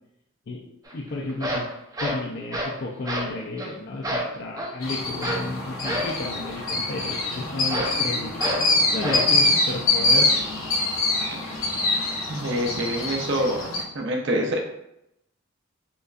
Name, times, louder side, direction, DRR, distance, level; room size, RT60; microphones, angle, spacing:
voice 1, 0.9-1.7 2.0-10.3, left 2 dB, 50° left, -2 dB, 0.4 m, -32 dB
sound 1, 0.9-1.0 1.3-2.8 3.1-3.3 3.6-3.7 4.0-4.8 5.2-5.5 5.8-6.2 7.7-8.0 8.4-8.7 9.0-9.3, equal, 15° right, 0.5 m, -28 dB
sound 2, 4.8-13.8, left 2 dB, 75° left, 0.9 m, -24 dB
voice 2, 12.3-13.6 13.9-14.6, equal, 60° right, 1 dB, 0.6 m, -25 dB
5.2 x 2.3 x 2.4 m, 0.81 s
head